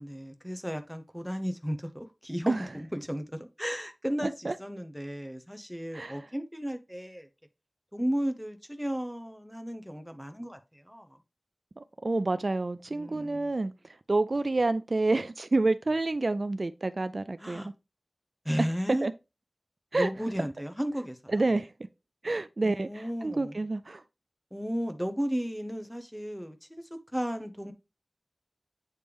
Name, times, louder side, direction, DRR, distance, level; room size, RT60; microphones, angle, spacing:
voice 1, 0.0-7.3 7.9-11.1 12.9-13.5 17.4-17.7 18.4-19.1 19.9-21.4 22.6-23.6 24.5-27.7, equal, ahead, 0.8 m, -34 dB
voice 2, 11.8-13.7 14.1-17.7 18.6-18.7 19.0-19.1 19.9-20.1 21.3-21.7 22.2-24.0, right 2 dB, 60° right, 0.4 m, -28 dB
8.5 x 3.2 x 3.4 m
wide cardioid pair, 60°, 0 cm